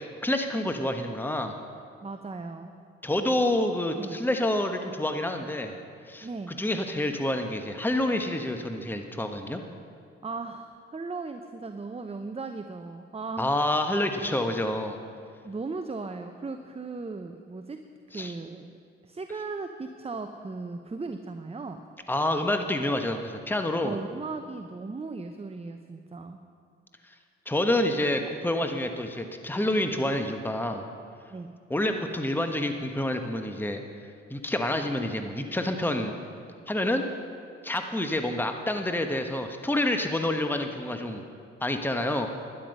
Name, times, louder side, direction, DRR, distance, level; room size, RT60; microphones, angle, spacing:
voice 1, 0.0-1.6 3.0-5.8 6.1-9.6 13.4-15.0 18.1-18.3 22.1-24.0 27.5-30.8 31.7-33.8 34.3-36.2 36.7-37.0 37.6-41.2 41.6-42.3, left 1 dB, 5° left, 5 dB, 1.2 m, -28 dB
voice 2, 2.0-2.7 4.0-4.2 6.2-6.5 10.2-13.6 15.4-17.8 18.1-18.8 19.0-21.8 23.8-26.4 31.3-31.5, right 3 dB, 20° right, 7 dB, 0.7 m, -37 dB
12.0 x 11.0 x 5.4 m, 2.3 s
hypercardioid pair, 45°, 31 cm